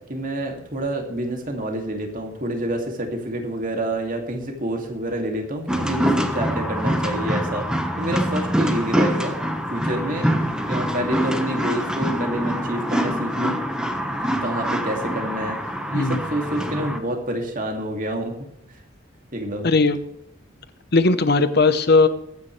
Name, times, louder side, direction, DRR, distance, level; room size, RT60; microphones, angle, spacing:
voice 1, 0.1-9.4 9.7-10.3 10.7-13.6 14.4-15.6 15.9-18.3 19.3-19.7, right 1 dB, 45° right, 2 dB, 2.5 m, -28 dB
sound 1, 5.7-17.0, equal, 5° right, 1.2 m, -24 dB
voice 2, 19.6-20.0 20.9-22.1, left 3 dB, 55° left, 11 dB, 1.0 m, -17 dB
22.0 x 9.6 x 3.3 m, 0.80 s
head